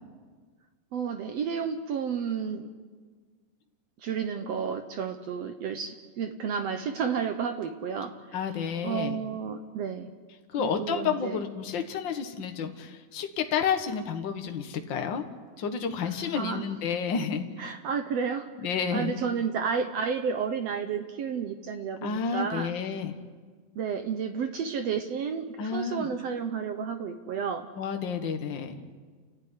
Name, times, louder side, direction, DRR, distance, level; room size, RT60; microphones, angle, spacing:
voice 1, 0.9-2.7 4.0-8.4 8.8-10.1 10.6-11.4 16.4-16.7 17.6-18.5 18.9-22.7 23.7-27.7, right 6 dB, 70° right, 7 dB, 1.5 m, -31 dB
voice 2, 8.3-9.2 10.5-15.2 15.6-17.7 18.6-19.1 22.0-23.1 25.6-26.1 27.8-28.8, left 6 dB, 50° left, 5 dB, 1.4 m, -30 dB
29.5 x 15.0 x 9.8 m, 1.5 s
omnidirectional pair, 4.2 m